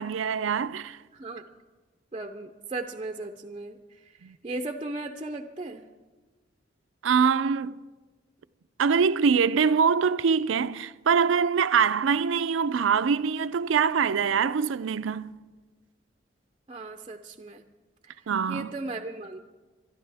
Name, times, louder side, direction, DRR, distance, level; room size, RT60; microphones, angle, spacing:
voice 1, 0.0-1.0 4.2-4.4 7.0-7.8 8.8-15.4 18.3-18.7, right 6 dB, 80° right, 0.4 m, -24 dB
voice 2, 1.1-1.4 2.1-5.8 16.7-17.6 18.0-19.4, right 2 dB, 25° right, 0.5 m, -37 dB
21.0 x 12.0 x 3.4 m
head